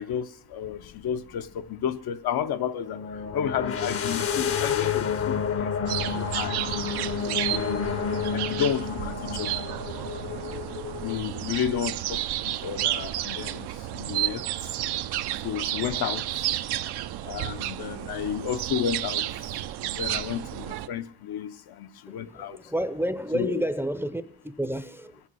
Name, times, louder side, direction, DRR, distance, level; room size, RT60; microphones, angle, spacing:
voice 1, 0.0-6.6 7.1-7.9 8.3-9.7 11.0-14.8 15.4-16.5 17.2-19.3 19.9-22.6 23.3-23.5, left 9 dB, 70° left, 0.7 m, -32 dB
sound 1, 0.7-0.9 2.9-11.2, left 7 dB, 35° left, 0.7 m, -30 dB
sound 2, 5.9-20.9, right 13 dB, 75° right, 0.6 m, -31 dB
voice 2, 22.1-25.2, right 1 dB, 5° right, 0.5 m, -30 dB
21.0 x 8.6 x 6.2 m
cardioid pair, 90°, 39 cm